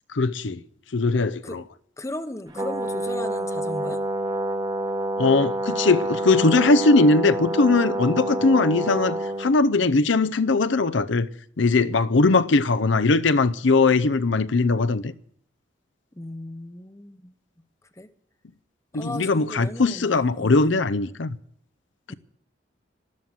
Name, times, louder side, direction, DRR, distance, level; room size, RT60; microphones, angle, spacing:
voice 1, 0.1-0.6 0.9-1.6 5.2-11.3 11.6-15.1 18.9-21.4, left 3 dB, 70° left, 0.7 m, -20 dB
voice 2, 2.0-4.0 16.1-17.3 18.0-18.1 18.9-20.8 22.1-22.2, left 1 dB, 15° left, 0.9 m, -36 dB
Brass instrument, 2.5-9.5, right 1 dB, 20° right, 1.2 m, -28 dB
13.0 x 13.0 x 7.7 m
head